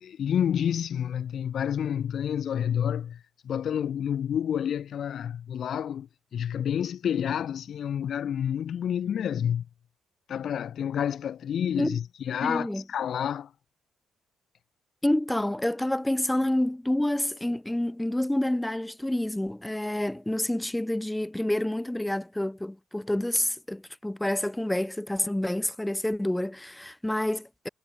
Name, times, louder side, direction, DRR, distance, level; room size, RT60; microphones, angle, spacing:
voice 1, 0.0-9.7 10.3-13.5, left 9 dB, 60° left, 0.5 m, -29 dB
voice 2, 12.4-12.8 15.0-27.7, left 1 dB, 5° left, 1.5 m, -28 dB
cardioid pair, 90°, 0 cm